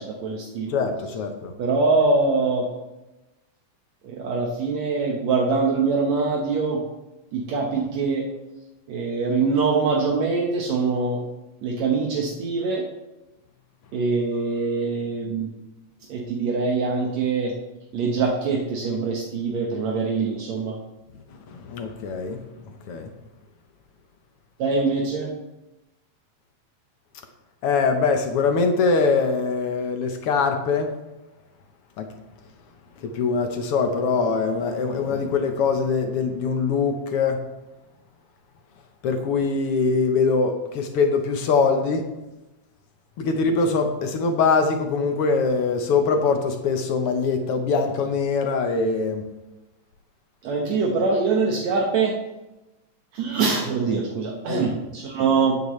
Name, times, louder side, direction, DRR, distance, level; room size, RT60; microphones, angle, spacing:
voice 1, 0.0-0.8 1.6-2.7 4.0-6.8 7.3-8.2 8.9-11.2 11.6-12.9 13.9-15.5 16.1-17.5 17.9-20.8 24.6-25.3 50.4-52.1 53.1-55.5, right 4 dB, 70° right, -1 dB, 2.4 m, -23 dB
voice 2, 0.7-1.5 21.5-22.4 22.9-23.1 27.6-30.9 32.0-32.1 33.0-37.4 39.0-42.1 43.2-49.2 54.5-54.7, left 4 dB, 60° left, 5 dB, 1.7 m, -23 dB
14.5 x 9.6 x 3.2 m, 1.0 s
omnidirectional pair, 3.3 m